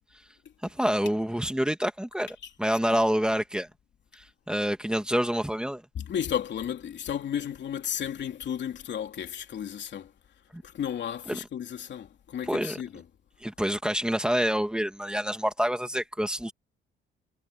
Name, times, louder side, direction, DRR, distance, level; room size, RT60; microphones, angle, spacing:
voice 1, 0.7-3.7 4.1-5.8 10.5-10.6 11.3-11.4 12.5-12.8 13.4-16.5, equal, 5° right, 2.3 m, -27 dB
voice 2, 5.9-10.1 10.6-13.0, left 9 dB, 65° left, 3.3 m, -33 dB
cardioid pair, 90°, 20 cm